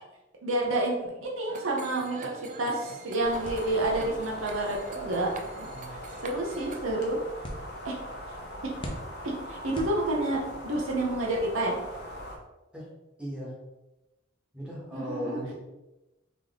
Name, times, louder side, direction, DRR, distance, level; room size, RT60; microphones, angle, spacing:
voice 1, 0.4-7.2 7.8-7.9 9.2-11.8 14.9-15.4, right 2 dB, 75° right, -2 dB, 0.9 m, -29 dB
sound 1, 1.5-6.9, right 4 dB, 40° right, 0.4 m, -45 dB
sound 2, 3.2-12.4, equal, 55° left, 0.8 m, -41 dB
sound 3, 3.4-10.6, equal, 25° left, 0.7 m, -45 dB
voice 2, 13.2-13.5 14.5-15.5, equal, 5° right, -6 dB, 1.3 m, -37 dB
3.7 x 3.1 x 3.7 m, 1.0 s
head